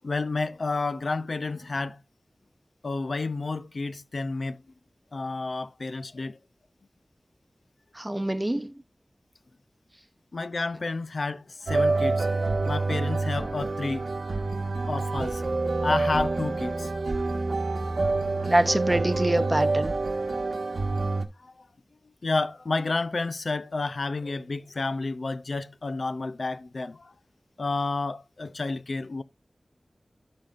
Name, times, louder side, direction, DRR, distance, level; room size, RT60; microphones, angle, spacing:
voice 1, 0.0-2.0 2.8-4.6 5.1-6.4 10.3-12.3 12.6-14.0 14.9-15.4 15.8-16.9 21.4-21.7 22.2-27.1 27.6-29.2, left 3 dB, 75° left, 0.5 m, -30 dB
voice 2, 7.9-8.7 18.4-19.9, right 1 dB, 20° right, 0.8 m, -25 dB
sound 1, 11.7-21.2, right 3 dB, 90° right, 1.3 m, -27 dB
15.5 x 5.7 x 2.5 m
wide cardioid pair, 70°, 0 cm